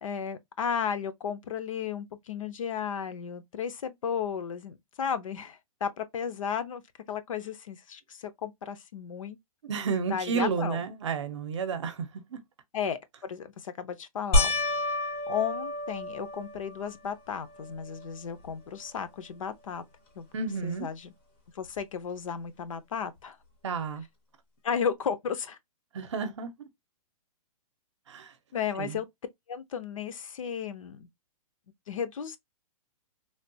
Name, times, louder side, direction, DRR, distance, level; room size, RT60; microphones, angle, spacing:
voice 1, 0.0-6.8 7.1-9.4 10.1-10.8 12.7-14.5 15.3-19.8 20.2-20.3 20.6-21.1 21.5-23.4 24.6-25.6 28.5-29.1 29.5-31.1 31.9-32.4, left 7 dB, 60° left, 0.6 m, -34 dB
voice 2, 9.6-12.4 20.3-20.9 23.6-24.0 25.9-26.7 28.1-28.3 28.8-29.0, right 5 dB, 50° right, 0.7 m, -32 dB
sound 1, 14.3-16.9 17.5-18.1 18.5-18.6 21.8-21.9, left 1 dB, 20° left, 0.5 m, -29 dB
3.3 x 2.2 x 2.6 m
hypercardioid pair, 175°, 19 cm